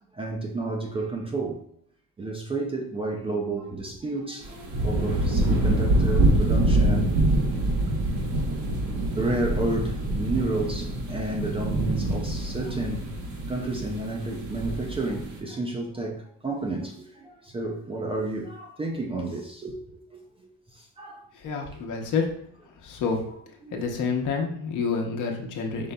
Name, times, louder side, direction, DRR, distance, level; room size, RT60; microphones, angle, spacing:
voice 1, 0.1-1.6 2.2-7.1 9.2-13.1 13.5-21.2 23.6-24.0, right 2 dB, 15° right, 0.4 m, -31 dB
sound 1, 4.4-15.4, right 1 dB, 55° right, 1.0 m, -25 dB
voice 2, 21.3-22.3 22.8-23.2 23.7-25.9, left 5 dB, 60° left, 0.9 m, -28 dB
5.3 x 3.8 x 2.2 m
cardioid pair, 155°, 34 cm